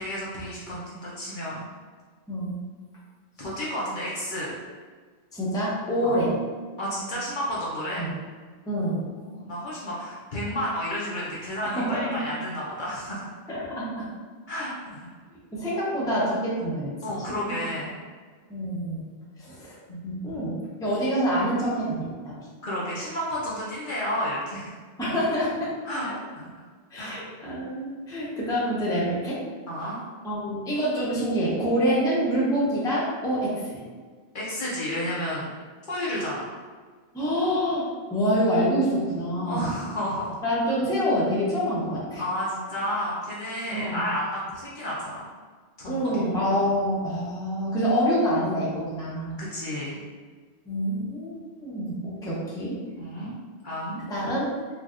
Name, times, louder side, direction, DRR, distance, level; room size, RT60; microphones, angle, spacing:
voice 1, 0.0-1.7 3.4-4.5 6.0-6.2 6.8-8.0 8.8-13.4 14.5-15.1 17.0-17.9 19.9-20.0 22.6-24.7 25.8-26.6 27.0-27.2 29.7-30.0 34.3-35.5 35.9-36.4 39.4-40.4 42.2-45.2 45.8-46.1 49.4-50.0 53.0-53.3 53.6-54.0, equal, 50° left, -7 dB, 0.9 m, -31 dB
voice 2, 5.3-6.3 8.0-8.1 8.7-9.0 11.6-12.0 13.5-13.9 15.5-16.9 17.3-17.6 18.5-19.0 19.4-19.8 20.0-20.5 20.8-22.4 25.0-25.7 26.0-26.1 26.9-29.4 30.2-33.8 37.1-37.8 38.1-39.7 40.4-42.2 43.7-44.0 45.9-49.4 50.7-52.8 54.1-54.5, equal, 5° left, -7 dB, 0.7 m, -26 dB
4.6 x 2.4 x 2.5 m, 1.5 s
omnidirectional pair, 1.1 m